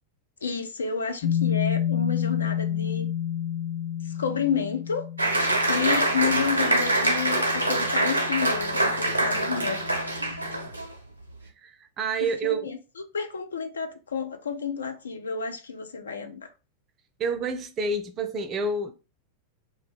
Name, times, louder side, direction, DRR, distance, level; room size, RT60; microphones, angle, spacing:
voice 1, 0.4-3.1 4.2-5.0 5.7-9.8 12.2-12.8 13.1-16.5, left 6 dB, 70° left, 0.3 m, -30 dB
Clean E harm, 1.2-10.7, left 10 dB, 40° left, 0.7 m, -31 dB
Applause, 5.2-10.9, right 1 dB, 85° right, 0.5 m, -25 dB
voice 2, 11.6-12.7 17.2-18.9, right 3 dB, 30° right, 0.4 m, -28 dB
2.3 x 2.1 x 3.1 m
figure-of-eight pair, 90°, 0 cm